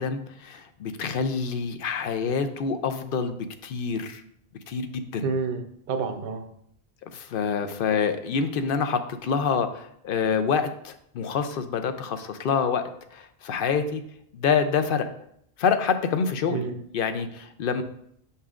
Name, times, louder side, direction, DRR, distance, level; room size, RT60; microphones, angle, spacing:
voice 1, 0.0-3.4 3.6-4.2 4.7-5.3 7.1-14.0 14.3-15.1 15.6-17.8, left 6 dB, 65° left, 9 dB, 0.7 m, -27 dB
voice 2, 5.2-6.5 16.5-16.8 17.8-17.9, right 5 dB, 60° right, 6 dB, 0.8 m, -29 dB
6.9 x 5.6 x 2.4 m, 0.70 s
omnidirectional pair, 1.1 m